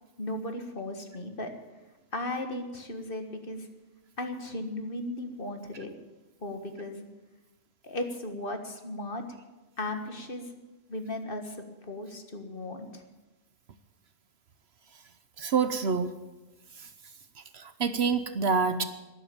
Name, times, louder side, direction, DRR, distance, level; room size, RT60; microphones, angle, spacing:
voice 1, 0.2-1.5 2.1-3.7 4.2-6.0 6.4-7.1 7.8-9.2 9.8-10.6 10.9-11.6 11.8-13.0, left 1 dB, 45° left, 6 dB, 1.7 m, -36 dB
voice 2, 15.4-16.1 17.5-18.8, right 5 dB, 55° right, 11 dB, 1.0 m, -26 dB
12.5 x 11.0 x 8.7 m, 1.2 s
omnidirectional pair, 1.3 m